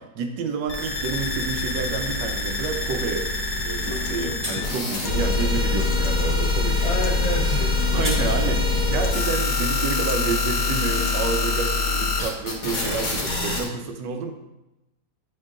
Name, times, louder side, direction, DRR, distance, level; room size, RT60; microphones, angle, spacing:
voice 1, 0.0-3.3 3.6-6.9 7.9-8.6 8.9-14.3, right 5 dB, 85° right, 5 dB, 1.4 m, -29 dB
sound 1, 0.7-13.6, left 3 dB, 55° left, 1.4 m, -24 dB
Acoustic guitar, 3.6-11.6, left 7 dB, 75° left, 1.1 m, -37 dB
sound 2, 3.9-4.1 4.4-4.6 7.6-8.3, equal, 10° right, 1.1 m, -31 dB
voice 2, 6.8-8.5, equal, 25° left, -3 dB, 0.8 m, -30 dB
8.4 x 4.5 x 2.5 m, 0.95 s
omnidirectional pair, 1.9 m